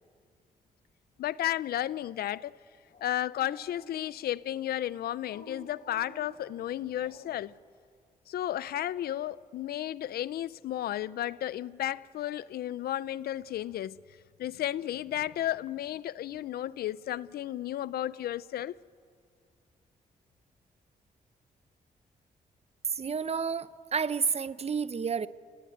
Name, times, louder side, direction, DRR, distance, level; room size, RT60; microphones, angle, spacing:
voice 1, 1.2-2.6 3.0-7.5 8.3-14.0 14.4-18.8, left 12 dB, 85° left, 0.6 m, -33 dB
Dog, 2.9-4.4 5.2-7.6, left 1 dB, 60° left, 3.9 m, -53 dB
voice 2, 22.9-25.3, right 6 dB, 40° right, 0.8 m, -30 dB
29.0 x 18.5 x 9.3 m
cardioid pair, 80°, 16 cm